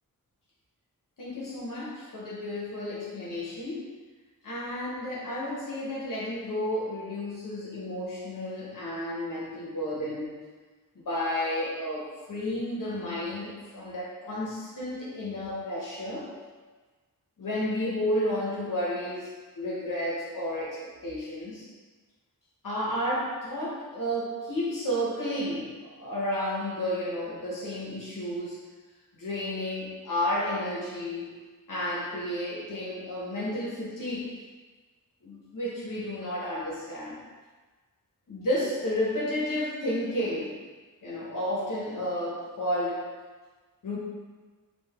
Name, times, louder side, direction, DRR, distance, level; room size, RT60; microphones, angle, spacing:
voice 1, 1.2-3.8 4.4-10.3 10.9-16.3 17.4-19.3 19.6-21.7 22.6-28.6 29.1-31.3 31.7-34.3 35.2-37.2 38.3-40.5 41.0-43.0 43.8-44.0, left 1 dB, 65° left, -6 dB, 0.9 m, -32 dB
3.8 x 2.4 x 3.4 m, 1.4 s
wide cardioid pair, 70°, 35 cm